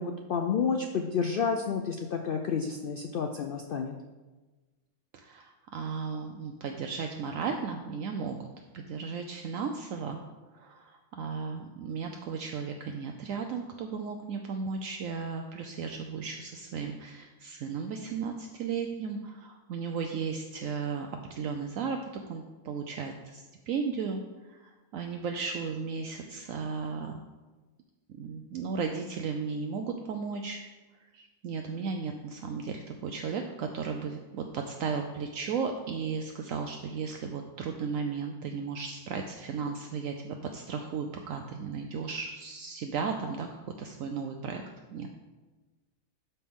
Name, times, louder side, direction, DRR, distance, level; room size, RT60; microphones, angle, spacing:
voice 1, 0.0-3.9, left 6 dB, 85° left, 4 dB, 0.4 m, -30 dB
voice 2, 5.1-8.5 8.7-10.2 10.5-24.2 24.5-27.2 28.1-30.6 31.1-44.6 44.9-45.1, right 5 dB, 70° right, 4 dB, 1.0 m, -35 dB
12.0 x 4.4 x 3.6 m, 1.2 s
omnidirectional pair, 1.5 m